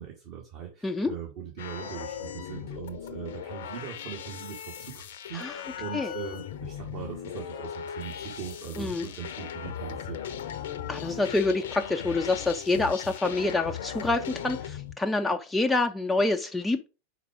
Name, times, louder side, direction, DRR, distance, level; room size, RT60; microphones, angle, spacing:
voice 1, 0.0-10.4, right 8 dB, 45° right, -1 dB, 1.5 m, -40 dB
sound 1, 1.6-14.9, left 9 dB, 55° left, 0.6 m, -38 dB
voice 2, 10.9-16.9, left 2 dB, 10° left, 4 dB, 0.4 m, -27 dB
4.7 x 4.6 x 4.9 m, 0.32 s
figure-of-eight pair, 90°, 0 cm